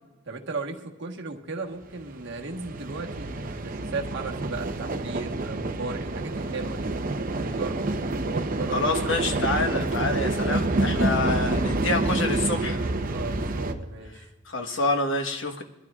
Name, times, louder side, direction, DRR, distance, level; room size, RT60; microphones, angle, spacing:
voice 1, 0.3-6.9 7.4-7.9 8.2-9.9 13.1-14.3, right 3 dB, 60° right, 2 dB, 1.3 m, -36 dB
sound 1, 1.8-13.7, right 2 dB, 45° right, 0.8 m, -28 dB
voice 2, 8.7-12.8 14.4-15.6, left 2 dB, 70° left, 5 dB, 1.3 m, -27 dB
24.0 x 12.5 x 2.4 m, 1.1 s
head